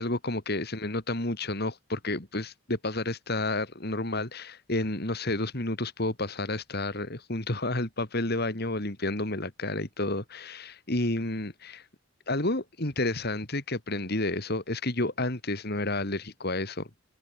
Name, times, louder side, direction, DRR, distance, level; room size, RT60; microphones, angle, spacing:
voice 1, 0.0-11.9 12.3-16.9, left 2 dB, 50° left, 2.8 m, -30 dB
head